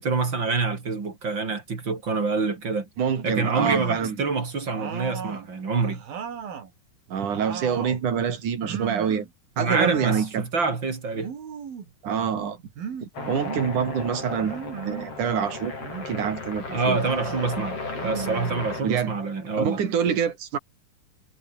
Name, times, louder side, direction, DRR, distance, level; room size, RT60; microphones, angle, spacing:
voice 1, 0.0-2.9 3.2-6.0 9.6-11.3 16.7-19.8, right 4 dB, 35° right, 3.4 m, -26 dB
voice 2, 3.0-4.2 7.1-9.3 9.6-10.5 12.0-12.6 13.0-15.7 16.1-17.0 18.8-19.1 19.6-20.6, right 7 dB, 60° right, 4.7 m, -26 dB
sound 1, 3.4-4.2 4.7-6.7 7.1-8.0 8.6-9.3 9.6-10.3 11.1-11.9 12.8-13.7 14.4-15.1 15.8-16.4 16.9-17.5 17.9-19.0, right 7 dB, 85° right, 5.2 m, -36 dB
sound 2, 13.1-18.8, left 3 dB, 40° left, 7.0 m, -35 dB
omnidirectional pair, 4.1 m